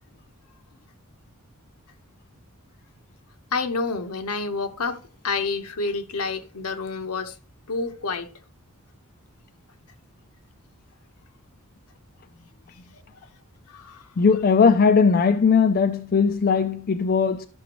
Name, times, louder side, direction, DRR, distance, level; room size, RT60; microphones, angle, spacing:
voice 1, 3.5-5.0 5.2-7.3 7.7-8.3 13.7-14.0, left 4 dB, 75° left, 0.9 m, -28 dB
voice 2, 14.2-17.5, left 5 dB, 45° left, 0.4 m, -19 dB
12.5 x 6.0 x 3.0 m
head